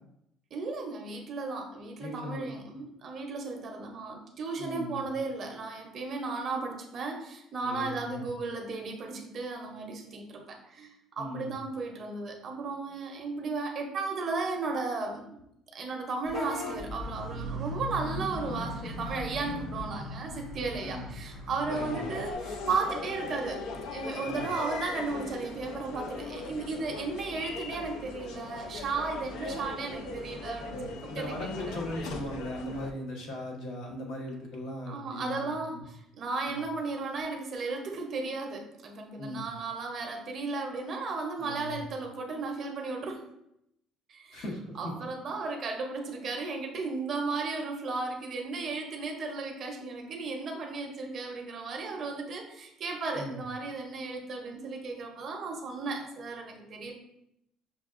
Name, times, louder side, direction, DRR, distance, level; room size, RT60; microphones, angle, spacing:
voice 1, 0.5-15.3 15.7-23.6 23.9-31.5 34.9-43.2 44.1-44.4 44.7-56.9, right 3 dB, 40° right, 2 dB, 0.6 m, -35 dB
voice 2, 2.0-2.8 4.6-5.0 7.6-8.3 11.2-11.5 20.8-21.1 21.7-22.1 24.2-24.4 30.7-35.8 36.5-36.6 39.2-39.4 41.4-41.8 44.3-44.9 53.1-53.4, left 1 dB, 60° left, 0 dB, 0.9 m, -38 dB
Vehicle horn car horn honking / Bus, 16.2-22.3, left 1 dB, 35° left, 0.9 m, -38 dB
sound 1, 21.7-32.9, left 3 dB, 80° left, 0.4 m, -39 dB
5.9 x 2.3 x 2.4 m, 0.80 s
cardioid pair, 155°, 0 cm